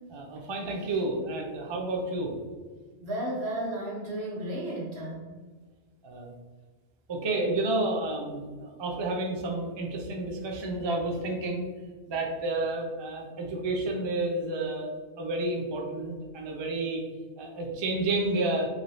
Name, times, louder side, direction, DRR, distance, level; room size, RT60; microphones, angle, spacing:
voice 1, 0.1-2.3 6.0-6.3 7.1-11.7 12.1-17.0 17.4-18.7, right 2 dB, 45° right, 0 dB, 0.3 m, -30 dB
voice 2, 3.0-5.2, right 1 dB, 80° right, -4 dB, 1.2 m, -33 dB
2.8 x 2.7 x 3.0 m, 1.4 s
omnidirectional pair, 1.1 m